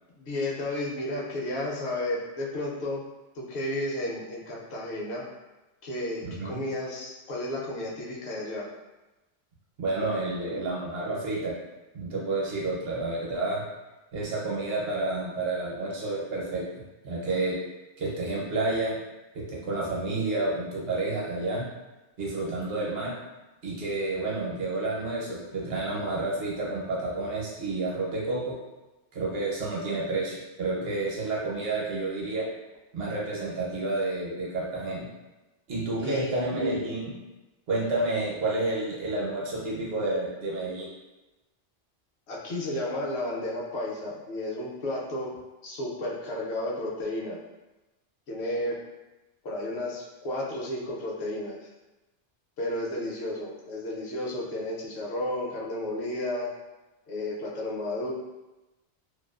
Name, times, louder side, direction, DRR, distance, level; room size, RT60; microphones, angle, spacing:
voice 1, 0.2-3.0 3.3-5.2 5.8-8.7 36.0-36.4 42.3-45.3 45.6-47.4 48.3-48.8 49.4-51.7 52.6-56.5 57.1-58.1, left 1 dB, 70° left, -3 dB, 0.9 m, -32 dB
voice 2, 6.2-6.6 9.8-11.5 11.9-13.6 14.1-16.6 17.0-17.6 18.0-19.0 19.3-21.6 22.2-23.1 23.6-28.5 29.1-32.4 32.9-35.1 35.7-37.2 37.7-40.9, right 2 dB, 65° right, -4 dB, 0.9 m, -30 dB
2.5 x 2.3 x 2.3 m, 1.1 s
omnidirectional pair, 1.2 m